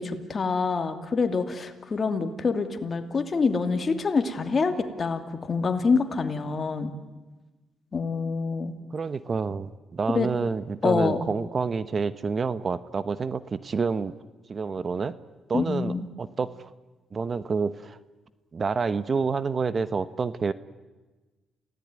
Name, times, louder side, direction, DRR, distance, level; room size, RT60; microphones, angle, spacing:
voice 1, 0.0-6.9 7.9-8.7 10.1-10.3 10.8-11.2 15.5-16.1, left 4 dB, 40° left, 7 dB, 2.7 m, -26 dB
voice 2, 8.9-14.1 14.5-15.2 15.5-16.5 17.1-18.0 18.5-20.5, right 5 dB, 40° right, 15 dB, 1.0 m, -28 dB
29.0 x 17.5 x 9.7 m, 1.2 s
cardioid pair, 90°, 0 cm